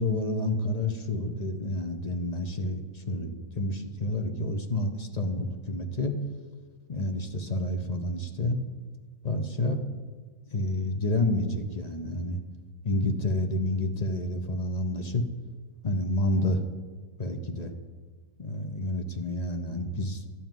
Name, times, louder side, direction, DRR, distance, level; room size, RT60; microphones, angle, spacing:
voice 1, 0.0-6.2 6.9-8.6 9.2-9.8 10.5-12.4 12.8-15.2 15.8-16.6 17.2-17.7 18.4-20.2, left 1 dB, 35° left, 6 dB, 0.7 m, -29 dB
12.0 x 5.7 x 9.1 m, 1.5 s
omnidirectional pair, 1.6 m